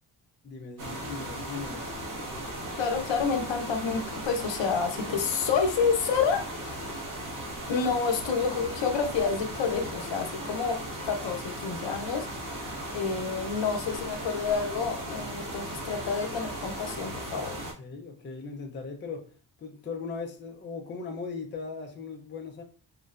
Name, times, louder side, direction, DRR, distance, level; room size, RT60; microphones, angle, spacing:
voice 1, 0.4-1.9 17.8-19.3 19.6-22.6, left 4 dB, 25° left, 0.4 m, -38 dB
sound 1, 0.8-17.7, right 1 dB, 45° right, 0.8 m, -37 dB
voice 2, 2.8-6.8 7.7-12.3 12.9-17.6, left 5 dB, 75° left, 0.6 m, -29 dB
3.8 x 2.1 x 2.2 m
wide cardioid pair, 155°, 45 cm